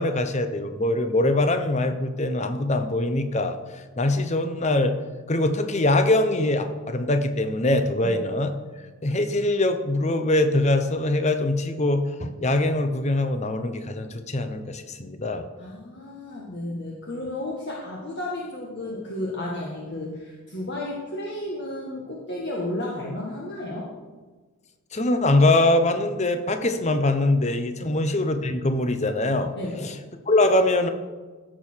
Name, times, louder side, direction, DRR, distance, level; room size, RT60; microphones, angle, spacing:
voice 1, 0.0-3.6 4.0-4.9 5.3-8.5 9.0-15.5 24.9-29.5 29.8-29.9 30.3-30.9, left 2 dB, 30° left, 8 dB, 0.8 m, -23 dB
voice 2, 15.6-23.9 27.8-28.0 29.6-29.9, left 1 dB, 50° left, -4 dB, 1.7 m, -33 dB
16.0 x 6.7 x 4.6 m, 1.3 s
head